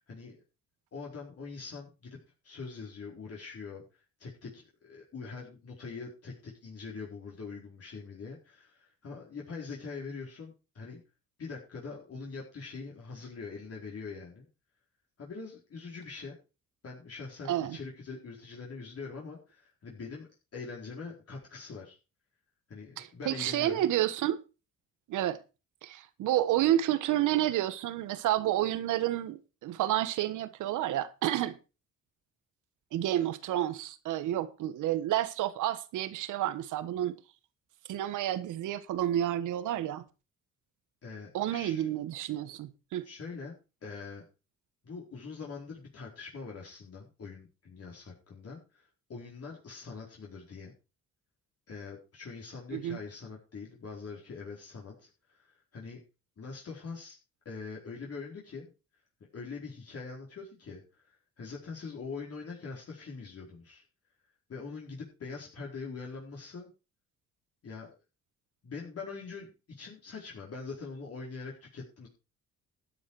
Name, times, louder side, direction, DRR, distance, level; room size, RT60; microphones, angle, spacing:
voice 1, 0.1-0.4 0.9-2.2 2.4-3.8 4.2-11.0 11.4-14.5 15.2-16.3 16.8-20.3 20.5-22.0 22.7-23.9 41.0-41.9 43.0-43.6 43.8-44.2 44.8-50.7 51.7-56.0 56.4-57.2 57.4-58.7 59.3-63.8 64.5-66.7 67.6-68.0 68.6-72.1, left 4 dB, 50° left, 4.4 m, -43 dB
voice 2, 23.0-24.4 25.1-25.4 25.8-31.6 32.9-37.1 37.9-40.0 41.3-43.1 52.7-53.0, right 12 dB, 85° right, 1.4 m, -30 dB
12.5 x 8.8 x 4.9 m
cardioid pair, 90°, 30 cm